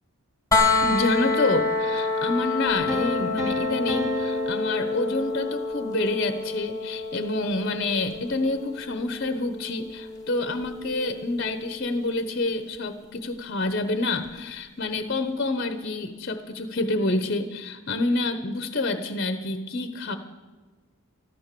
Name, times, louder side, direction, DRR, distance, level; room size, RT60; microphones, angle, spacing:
sound 1, 0.5-12.3 14.3-14.4, left 3 dB, 15° left, 1.5 m, -28 dB
voice 1, 0.8-20.2, left 2 dB, 45° left, 9 dB, 1.0 m, -28 dB
sound 2, 2.9-5.8, left 1 dB, 15° right, 1.4 m, -32 dB
14.0 x 13.5 x 6.8 m, 1.3 s
head